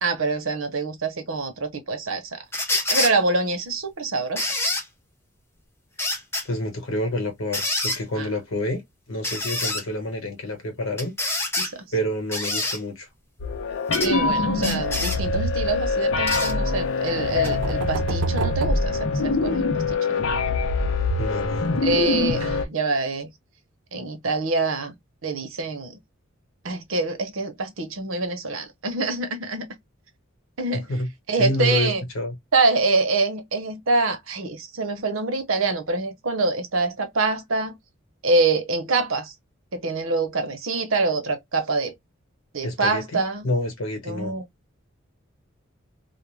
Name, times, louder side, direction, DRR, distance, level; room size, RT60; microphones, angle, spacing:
voice 1, 0.0-2.4 2.9-4.5 8.1-8.3 11.6-11.8 14.0-20.3 21.8-23.3 23.9-24.9 25.2-26.0 26.6-29.7 30.6-30.8 31.3-32.0 32.5-37.7 38.2-39.3 39.7-41.9 42.5-43.5 44.0-44.4, right 3 dB, 85° right, 0.9 m, -25 dB
sound 1, 2.5-3.1 4.4-4.8 6.0-6.4 7.5-8.0 9.2-9.8 11.0-11.7 12.3-12.8 13.9-14.1 14.6-15.2 16.3-16.5 17.4-17.5, left 2 dB, 10° left, 0.7 m, -26 dB
voice 2, 6.4-8.8 9.1-11.1 11.9-13.1 21.2-21.8 22.5-22.6 30.7-31.1 31.4-32.3 42.6-44.3, left 1 dB, 85° left, 1.1 m, -28 dB
sound 2, 13.4-22.6, left 3 dB, 70° left, 0.6 m, -24 dB
sound 3, 16.8-19.7, right 4 dB, 65° right, 0.4 m, -32 dB
2.5 x 2.1 x 3.2 m
head